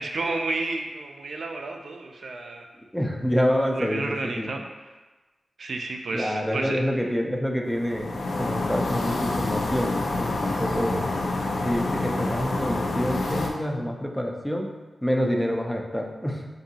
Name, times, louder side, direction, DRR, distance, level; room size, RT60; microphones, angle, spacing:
voice 1, 0.0-2.7 3.7-4.6 5.6-6.8, right 3 dB, 70° right, 2 dB, 0.4 m, -31 dB
voice 2, 2.8-4.5 6.1-11.0 11.6-14.7 15.0-16.5, equal, 5° left, 1 dB, 0.4 m, -27 dB
sound 1, 7.7-13.5, left 2 dB, 70° left, 0.5 m, -27 dB
4.7 x 2.6 x 2.7 m, 1.2 s
wide cardioid pair, 110°, 0 cm